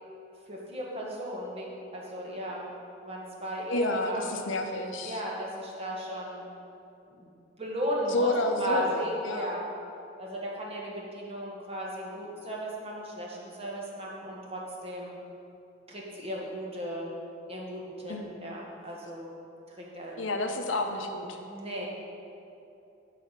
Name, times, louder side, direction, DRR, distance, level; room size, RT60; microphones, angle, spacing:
voice 1, 0.5-2.7 3.0-4.4 5.0-6.4 7.1-7.3 7.6-9.7 10.2-15.2 15.9-17.1 17.5-19.3 19.7-20.2 21.5-21.9, equal, 30° right, -3 dB, 1.4 m, -36 dB
voice 2, 3.7-5.2 8.1-9.6 18.1-18.3 20.2-21.4, left 1 dB, 70° left, 4 dB, 0.8 m, -30 dB
11.0 x 4.3 x 5.8 m, 2.8 s
head